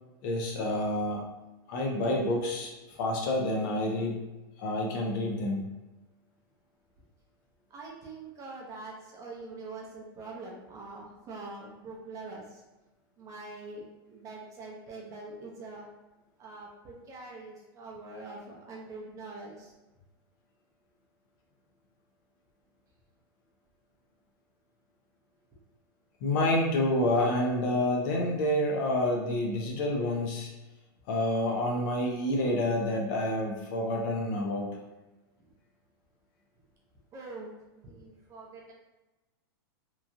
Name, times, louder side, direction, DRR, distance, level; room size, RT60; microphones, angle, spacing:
voice 1, 0.2-1.3 1.7-4.2 4.6-5.6 26.2-30.5 31.1-34.7, left 1 dB, 55° left, 0 dB, 0.7 m, -28 dB
voice 2, 7.7-12.6 13.2-15.9 16.4-19.7 37.1-38.7, right 3 dB, 25° right, -3 dB, 0.7 m, -44 dB
3.0 x 2.3 x 2.6 m, 1.1 s
supercardioid pair, 140°, 13 cm